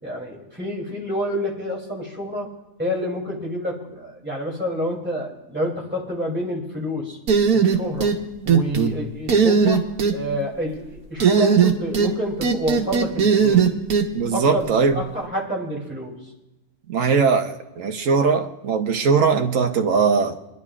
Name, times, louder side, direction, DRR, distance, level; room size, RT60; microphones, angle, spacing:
voice 1, 0.0-2.5 2.8-7.2 7.5-8.1 8.4-9.8 10.1-13.7 14.3-16.2, equal, 5° right, -4 dB, 2.9 m, -28 dB
sound 1, 7.3-8.2 8.5-8.9 9.3-10.1 11.2-12.1 12.4-14.1, right 6 dB, 90° right, 1.6 m, -17 dB
voice 2, 14.1-15.0 16.9-20.4, right 5 dB, 65° right, 5 dB, 1.3 m, -20 dB
29.0 x 10.5 x 2.4 m, 1.0 s
omnidirectional pair, 1.5 m